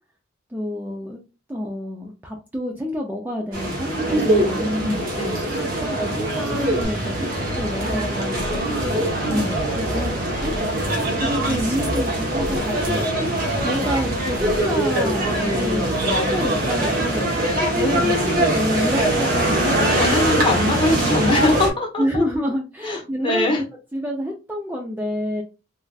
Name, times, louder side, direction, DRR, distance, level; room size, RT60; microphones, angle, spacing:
voice 1, 0.5-1.2 1.5-5.0 5.4-8.4 8.8-9.5 9.7-10.9 11.2-13.3 13.6-17.3 17.7-20.1 20.4-20.5 20.8-21.2 22.0-23.7 23.9-25.4, equal, 10° right, 0 dB, 0.4 m, -28 dB
sound 1, 3.5-21.7, right 1 dB, 45° right, 0.9 m, -22 dB
voice 2, 4.8-5.5 9.2-9.7 17.9-18.8 20.0-22.2 22.8-23.6, left 2 dB, 25° left, -1 dB, 0.9 m, -23 dB
sound 2, 6.8-14.8, equal, 60° left, 0.6 m, -34 dB
3.3 x 2.4 x 2.3 m, 0.30 s
head